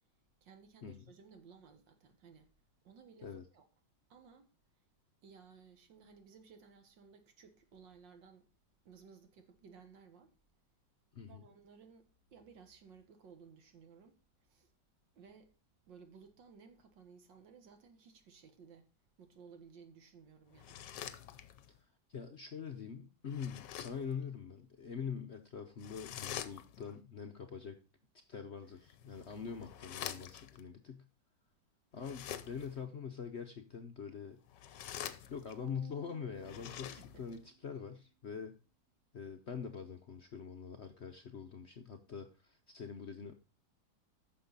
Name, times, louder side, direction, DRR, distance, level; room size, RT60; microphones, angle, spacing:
voice 1, 0.4-2.5 2.8-3.7 4.1-4.5 5.2-8.5 8.9-10.3 11.3-14.2 14.5-14.7 15.2-15.5 15.9-18.9 19.2-20.9 37.0-37.4, right 6 dB, 80° right, 2.1 m, -58 dB
voice 2, 11.1-11.4 22.1-27.8 28.3-31.0 31.9-34.4 35.3-38.6 39.1-43.3, left 6 dB, 55° left, 0.7 m, -44 dB
sound 1, 20.5-21.8 23.3-24.1 25.8-27.0 28.8-30.6 32.0-32.8 34.4-35.7 36.3-37.4, left 10 dB, 75° left, 1.3 m, -46 dB
sound 2, 35.6-38.0, right 14 dB, 65° right, 1.7 m, -59 dB
9.6 x 6.7 x 3.9 m
omnidirectional pair, 2.0 m